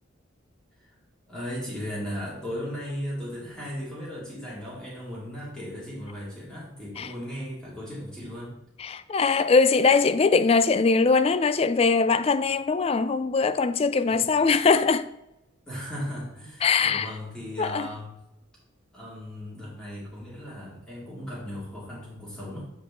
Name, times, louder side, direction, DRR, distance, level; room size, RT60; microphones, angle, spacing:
voice 1, 1.3-8.6 14.1-14.2 15.7-18.1 18.9-22.6, equal, 5° left, 2.5 m, -36 dB
voice 2, 8.8-15.1 16.6-17.1 17.6-17.9, left 4 dB, 30° left, 0.3 m, -21 dB
7.7 x 4.8 x 3.7 m
head